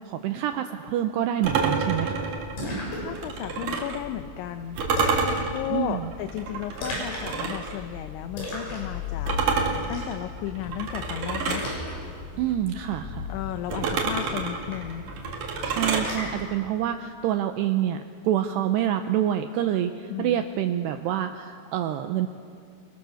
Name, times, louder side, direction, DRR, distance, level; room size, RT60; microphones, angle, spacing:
voice 1, 0.0-2.3 5.7-6.1 12.4-13.3 15.6-22.3, right 11 dB, 85° right, 7 dB, 2.3 m, -27 dB
sound 1, 1.4-4.0 4.8-7.8 9.3-11.7 13.7-16.1, right 4 dB, 55° right, 2.8 m, -28 dB
Splash splatter, 2.2-16.5, left 3 dB, 60° left, 8.3 m, -37 dB
voice 2, 2.7-4.8 5.5-9.4 9.7-11.7 13.3-15.0 20.1-20.4, left 12 dB, 80° left, 8 dB, 2.9 m, -34 dB
29.5 x 24.0 x 6.5 m, 2.2 s
omnidirectional pair, 5.8 m